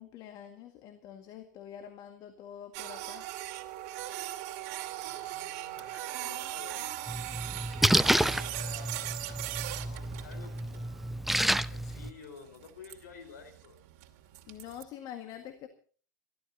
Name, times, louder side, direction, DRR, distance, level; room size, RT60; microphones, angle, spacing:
voice 1, 0.0-3.3 14.5-15.7, left 10 dB, 45° left, 8 dB, 1.9 m, -46 dB
Printer, 2.7-14.8, right 15 dB, 55° right, 2.5 m, -40 dB
voice 2, 5.1-7.3 8.0-10.9 11.6-13.8, left 5 dB, 70° left, 8 dB, 4.3 m, -51 dB
Splash splatter, 7.1-12.1, right 1 dB, ahead, 0.6 m, -30 dB
28.0 x 13.0 x 2.8 m, 0.42 s
hypercardioid pair, 90°, 9 cm